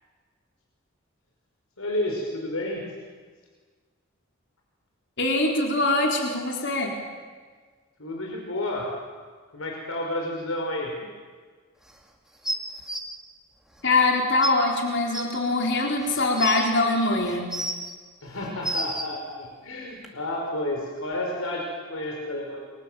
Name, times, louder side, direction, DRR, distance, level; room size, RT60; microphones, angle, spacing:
voice 1, 1.8-2.8 8.0-8.9 9.5-10.9 18.2-22.6, left 1 dB, 85° left, 0 dB, 5.5 m, -31 dB
voice 2, 5.2-7.0 13.8-17.5, left 2 dB, 55° left, 0 dB, 4.2 m, -23 dB
sound 1, 12.4-13.0 14.0-14.1 14.4-14.5 15.1-15.2 16.0-16.6 17.3-17.9 18.4-19.0 20.0-20.1, right 1 dB, 5° right, 2.5 m, -30 dB
30.0 x 24.5 x 7.7 m, 1.5 s
head